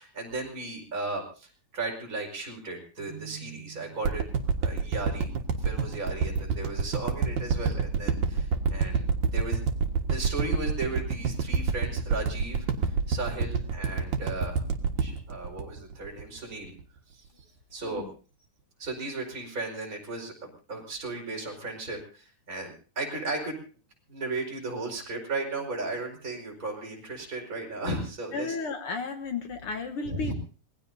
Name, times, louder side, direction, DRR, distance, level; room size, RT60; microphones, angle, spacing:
voice 1, 0.0-4.2 4.6-5.3 5.6-9.7 10.0-14.6 15.0-16.7 17.1-17.3 17.7-18.1 18.8-23.6 24.1-28.6 30.0-30.3, right 2 dB, 25° right, 0 dB, 5.2 m, -35 dB
Keyboard (musical), 3.0-4.8, right 9 dB, 90° left, 6.2 m, -47 dB
sound 1, 4.0-16.4 16.8-16.9, right 5 dB, 75° right, 2.9 m, -27 dB
voice 2, 28.3-30.3, left 4 dB, 55° left, 7 dB, 1.8 m, -33 dB
26.0 x 19.5 x 2.7 m, 0.38 s
omnidirectional pair, 3.5 m